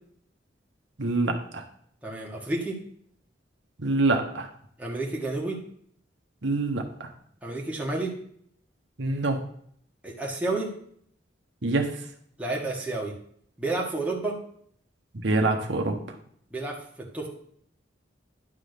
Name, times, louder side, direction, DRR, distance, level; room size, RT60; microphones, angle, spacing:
voice 1, 1.0-1.6 3.8-4.5 6.4-7.1 9.0-9.4 11.6-11.9 15.2-16.0, right 2 dB, 70° right, 3 dB, 1.1 m, -25 dB
voice 2, 2.0-2.8 4.8-5.6 7.4-8.1 10.0-10.7 12.4-13.1 13.6-14.3 16.5-16.7 17.1-17.3, right 2 dB, 5° right, -3 dB, 1.5 m, -30 dB
10.5 x 3.8 x 6.6 m, 0.64 s
head